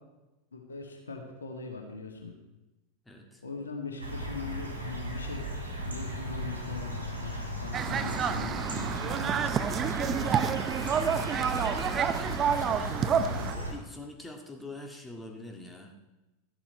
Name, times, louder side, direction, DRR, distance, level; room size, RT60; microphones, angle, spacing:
voice 1, 0.5-2.3 3.4-5.4 5.8-9.3 13.1-13.5, left 4 dB, 75° left, 2 dB, 1.9 m, -41 dB
voice 2, 3.1-3.4 12.5-13.0 13.5-16.0, left 2 dB, 10° left, 3 dB, 1.9 m, -44 dB
sound 1, 4.0-13.7, equal, 85° right, 2.3 m, -36 dB
sound 2, 7.7-13.6, right 7 dB, 30° right, 0.7 m, -29 dB
13.5 x 11.0 x 4.4 m, 1.0 s
figure-of-eight pair, 85°, 0 cm